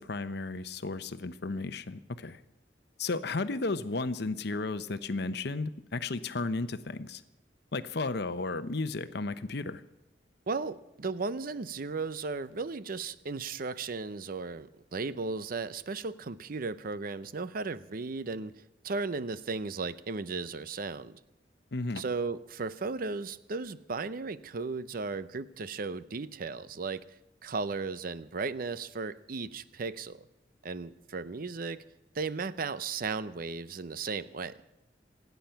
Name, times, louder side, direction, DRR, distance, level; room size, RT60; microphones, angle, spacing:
voice 1, 0.0-2.4 3.0-7.2 7.7-9.8 21.7-22.0, left 3 dB, 65° left, 12 dB, 0.9 m, -34 dB
voice 2, 10.5-18.5 18.8-21.2 22.0-27.0 27.4-30.2 30.6-31.8 32.1-34.6, right 4 dB, 55° right, 15 dB, 0.6 m, -35 dB
26.5 x 9.4 x 5.8 m, 0.87 s
head